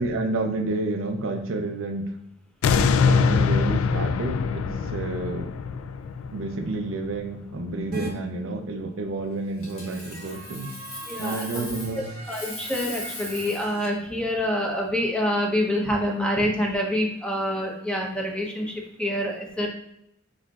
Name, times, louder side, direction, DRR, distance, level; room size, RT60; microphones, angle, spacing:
voice 1, 0.0-2.1 3.0-5.5 6.3-10.8 11.2-12.1, right 2 dB, 65° right, 5 dB, 0.5 m, -30 dB
sound 1, 2.6-7.7 8.2-8.3, left 5 dB, 85° left, 0.3 m, -24 dB
sound 2, 7.9-8.1 9.5-13.9, right 2 dB, 45° right, 0.9 m, -39 dB
Coin (dropping), 9.6-12.0 12.2-13.7 16.5-16.7, left 3 dB, 70° left, 1.6 m, -39 dB
voice 2, 11.1-11.8 12.3-19.7, equal, 5° left, -1 dB, 0.8 m, -26 dB
4.8 x 4.3 x 2.4 m, 0.79 s
head